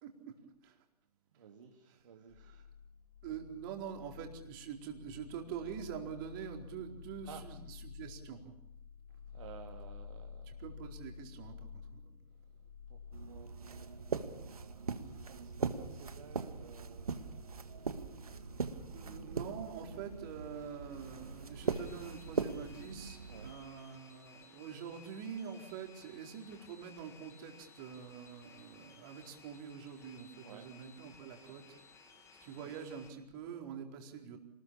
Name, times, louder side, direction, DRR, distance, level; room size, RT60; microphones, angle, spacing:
voice 1, 1.3-2.6 7.2-7.4 9.3-10.6 12.9-13.0 13.3-13.5 13.8-13.9 14.2-17.1 18.8-19.3 23.3-23.5 30.4-30.7, right 7 dB, 50° right, 1 dB, 2.7 m, -54 dB
sound 1, 2.3-13.4, left 6 dB, 30° left, 4.9 m, -51 dB
voice 2, 3.2-8.5 10.5-12.2 18.9-31.8 32.1-34.4, right 7 dB, 35° right, 2 dB, 4.4 m, -45 dB
sound 2, 13.1-23.5, right 5 dB, 70° right, 1.9 m, -40 dB
sound 3, 19.9-33.1, left 5 dB, 15° left, 2.9 m, -59 dB
29.0 x 20.5 x 7.2 m, 0.83 s
figure-of-eight pair, 120°, 20 cm